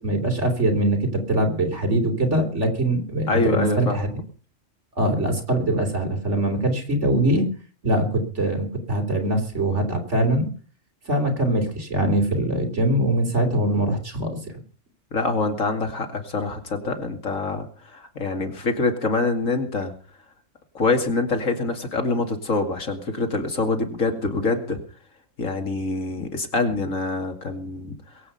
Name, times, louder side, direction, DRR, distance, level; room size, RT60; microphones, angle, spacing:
voice 1, 0.0-4.1 5.0-7.5 7.8-10.5 11.1-14.4, right 1 dB, 60° right, 5 dB, 3.9 m, -22 dB
voice 2, 3.3-4.0 15.1-19.9 20.7-24.8 25.4-28.0, left 3 dB, 75° left, 5 dB, 2.9 m, -25 dB
22.0 x 8.6 x 5.6 m, 0.42 s
omnidirectional pair, 1.4 m